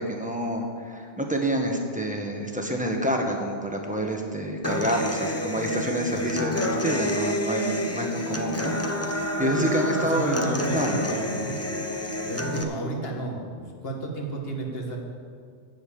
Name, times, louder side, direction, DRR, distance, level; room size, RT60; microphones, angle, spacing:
voice 1, 0.0-8.7 9.4-11.1, right 1 dB, 5° right, 1 dB, 1.2 m, -27 dB
Human voice / Acoustic guitar, 4.6-12.6, left 1 dB, 15° left, 0.8 m, -29 dB
voice 2, 9.4-11.6 12.2-15.0, right 2 dB, 60° left, 1 dB, 1.8 m, -32 dB
10.0 x 7.1 x 8.6 m, 2.2 s
omnidirectional pair, 1.1 m